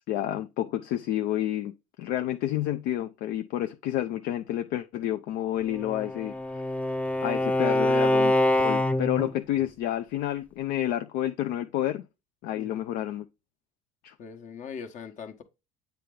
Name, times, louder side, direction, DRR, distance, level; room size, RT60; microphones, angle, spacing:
voice 1, 0.0-6.6 7.2-12.0 12.4-13.2 14.0-14.1, left 12 dB, 65° left, 0.5 m, -30 dB
Bowed string instrument, 5.7-9.3, left 1 dB, 10° left, 0.5 m, -25 dB
voice 2, 14.2-15.4, left 6 dB, 50° left, 1.2 m, -41 dB
8.2 x 3.4 x 3.8 m
supercardioid pair, 90°, 17 cm